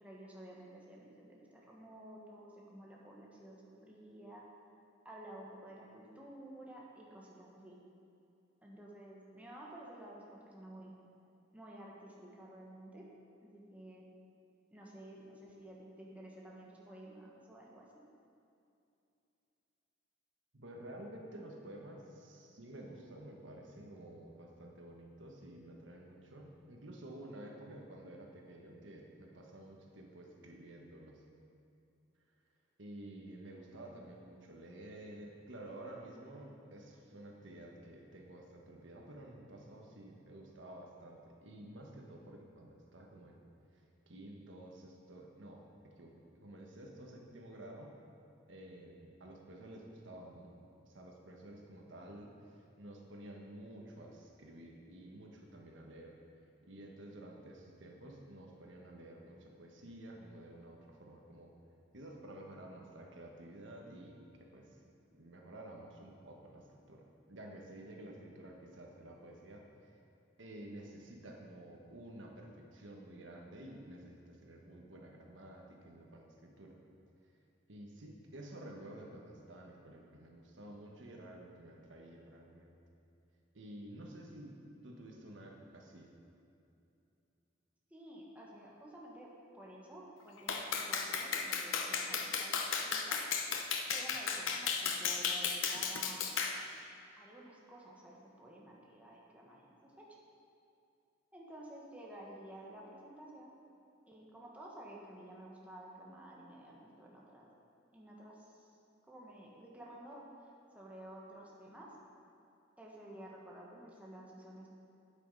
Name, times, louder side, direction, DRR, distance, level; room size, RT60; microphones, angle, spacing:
voice 1, 0.0-4.5 5.0-7.8 8.6-10.9 11.5-13.1 13.4-14.1 14.7-17.8 87.9-89.3 89.5-93.2 93.9-96.3 97.2-100.1 101.3-103.5 104.1-107.5 107.9-108.7 109.1-110.3 110.7-111.9 112.8-114.7, right 1 dB, 10° right, -4 dB, 1.3 m, -52 dB
voice 2, 20.5-31.2 32.8-43.5 44.1-48.0 48.5-50.5 50.8-56.1 56.6-61.5 61.9-64.7 65.1-69.6 70.4-76.8 77.7-82.8 83.5-86.1, right 1 dB, 70° right, 0 dB, 1.3 m, -51 dB
Clapping, 90.5-96.6, left 6 dB, 90° left, 0.8 m, -35 dB
8.7 x 8.3 x 5.4 m, 2.7 s
head